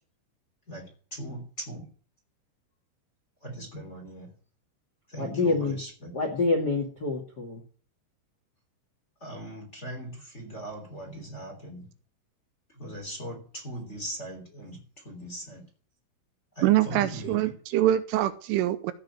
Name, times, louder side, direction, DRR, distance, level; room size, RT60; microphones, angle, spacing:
voice 1, 0.7-1.9 3.4-4.3 5.1-6.1 9.2-11.9 12.7-15.7 16.5-17.5, right 1 dB, 20° left, 2 dB, 2.5 m, -40 dB
voice 2, 5.2-5.8 6.1-7.6, left 3 dB, 75° left, 1 dB, 0.9 m, -27 dB
voice 3, 16.6-18.9, right 13 dB, 80° right, 11 dB, 3.1 m, -24 dB
15.5 x 5.2 x 8.0 m, 0.43 s
omnidirectional pair, 5.9 m